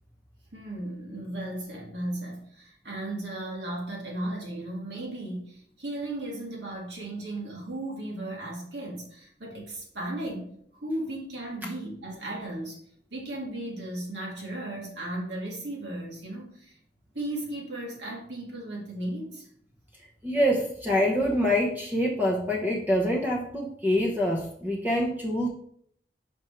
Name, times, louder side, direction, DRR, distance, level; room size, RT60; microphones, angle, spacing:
voice 1, 0.5-12.8 13.1-16.8 17.1-19.5, right 1 dB, 75° right, -2 dB, 2.2 m, -35 dB
voice 2, 20.2-25.5, equal, 10° right, -1 dB, 0.9 m, -25 dB
6.1 x 5.1 x 4.3 m, 0.64 s
head